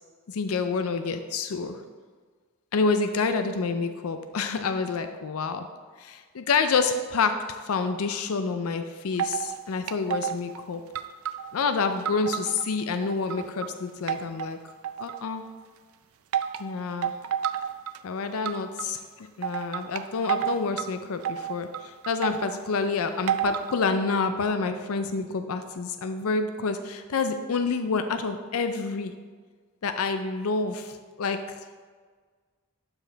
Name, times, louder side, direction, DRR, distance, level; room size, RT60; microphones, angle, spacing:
voice 1, 0.3-1.8 2.7-5.7 6.0-10.8 11.5-14.6 15.0-15.4 16.6-17.1 18.0-29.1 29.8-31.6, left 4 dB, 75° left, 8 dB, 0.5 m, -28 dB
sound 1, 9.2-9.6 9.9-10.6 11.0-12.6 13.0-13.7 14.1-15.3 16.3-16.6 17.0-18.0 18.5-18.8 19.4-20.9 21.2-22.6 23.3-23.7, right 9 dB, 75° right, 0.4 m, -30 dB
12.0 x 4.7 x 3.4 m, 1.6 s
head